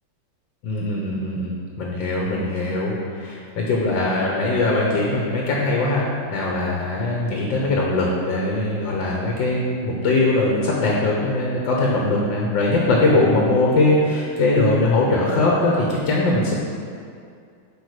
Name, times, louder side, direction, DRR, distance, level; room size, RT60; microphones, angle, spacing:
voice 1, 0.6-16.5, left 2 dB, 75° left, -2 dB, 1.7 m, -21 dB
8.0 x 6.1 x 4.9 m, 2.4 s
omnidirectional pair, 2.0 m